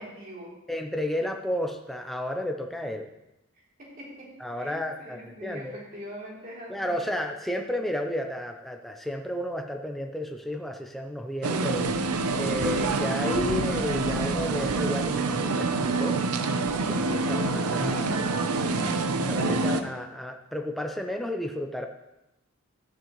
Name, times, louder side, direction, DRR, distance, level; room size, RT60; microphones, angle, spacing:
voice 1, 0.0-0.6 3.8-7.1, equal, 40° right, -4 dB, 3.3 m, -43 dB
voice 2, 0.7-3.1 4.4-5.8 6.7-11.9 12.4-16.2 16.8-18.6 19.3-21.9, left 1 dB, ahead, 3 dB, 0.6 m, -32 dB
sound 1, 11.4-19.8, right 3 dB, 90° right, 0.7 m, -26 dB
12.5 x 10.5 x 3.1 m, 0.91 s
head